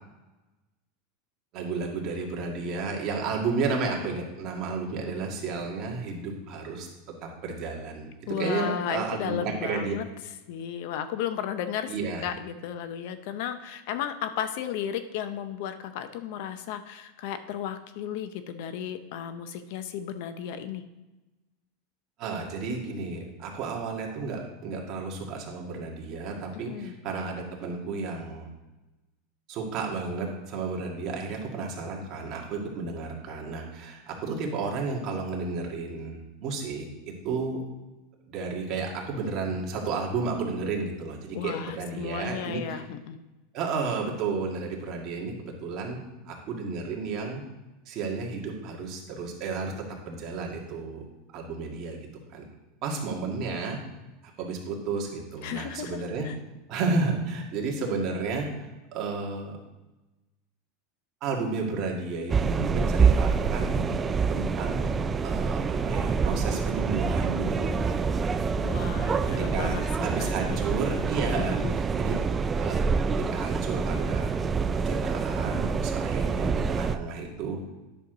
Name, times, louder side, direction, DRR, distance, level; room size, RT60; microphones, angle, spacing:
voice 1, 1.5-6.9 7.2-8.1 8.4-9.9 11.9-12.3 22.2-28.5 29.5-37.6 38.3-42.8 43.5-46.0 46.3-47.4 47.9-49.7 50.1-51.0 51.3-52.0 52.3-52.4 52.8-53.8 54.4-56.3 56.7-59.6 61.2-63.9 64.3-67.9 69.5-72.2 72.6-72.8 73.3-74.3 74.7-77.7, right 4 dB, 40° right, -1 dB, 1.9 m, -32 dB
voice 2, 8.3-10.1 10.5-11.9 12.2-20.8 26.5-26.9 41.3-43.2 55.4-56.3 68.6-70.6 71.3-71.7, left 9 dB, 60° left, 10 dB, 0.6 m, -34 dB
sound 1, 62.3-77.0, right 5 dB, 20° right, 0.3 m, -26 dB
10.0 x 6.4 x 3.9 m, 1.1 s
supercardioid pair, 150°, 0 cm